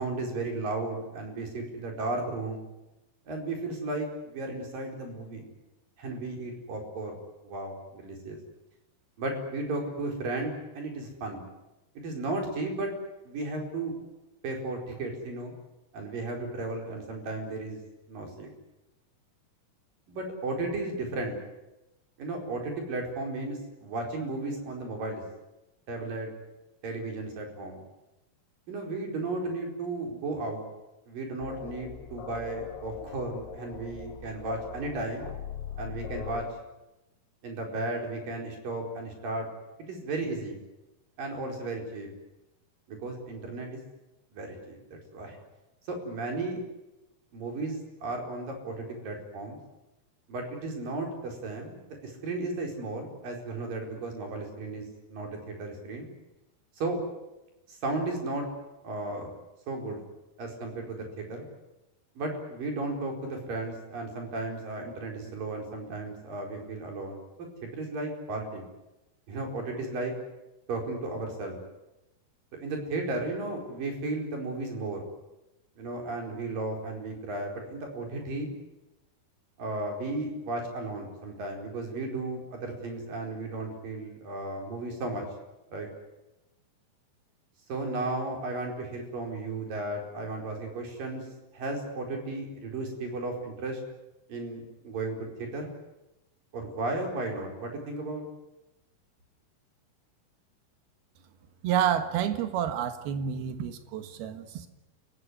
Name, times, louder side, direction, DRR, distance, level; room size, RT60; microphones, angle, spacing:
voice 1, 0.0-2.6 3.3-5.5 6.0-7.1 7.4-8.4 9.2-11.4 12.0-12.9 13.2-14.0 14.4-15.5 15.9-17.8 18.1-18.5 20.1-21.4 22.2-25.2 25.9-26.3 26.8-27.8 28.7-30.6 31.1-35.3 35.8-36.5 37.4-39.5 39.9-40.6 41.2-42.1 42.9-43.8 44.3-45.4 45.9-46.6 47.3-49.6 50.3-56.1 56.8-57.0 57.7-58.5 58.8-59.3 59.7-60.0 60.4-61.5 62.2-67.2 67.6-68.6 69.3-70.1 70.7-71.6 72.6-75.0 75.8-78.5 79.6-85.2 85.7-85.9 87.7-91.2 91.5-93.8 94.3-95.7 96.5-98.2, right 2 dB, 55° right, 2 dB, 6.2 m, -34 dB
sound 1, 31.4-36.4, left 8 dB, 75° left, 4.0 m, -41 dB
voice 2, 101.6-104.7, right 9 dB, 75° right, 9 dB, 3.4 m, -29 dB
29.5 x 16.5 x 9.8 m, 0.97 s
omnidirectional pair, 4.7 m